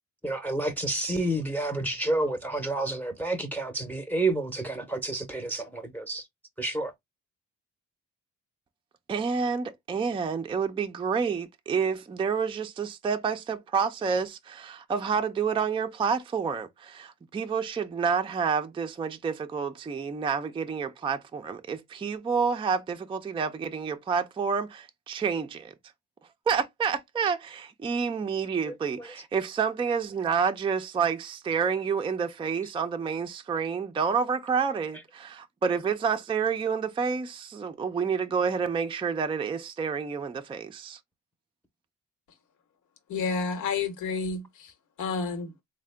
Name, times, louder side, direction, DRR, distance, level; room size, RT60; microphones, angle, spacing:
voice 1, 0.2-6.2 6.6-6.9 28.7-29.1, right 2 dB, 5° left, 0.7 m, -30 dB
voice 2, 9.1-25.7 26.5-41.0, right 6 dB, 20° right, 0.4 m, -29 dB
voice 3, 43.1-44.7 45.0-45.5, left 4 dB, 80° left, 1.1 m, -30 dB
3.5 x 2.1 x 3.3 m
cardioid pair, 90°, 30 cm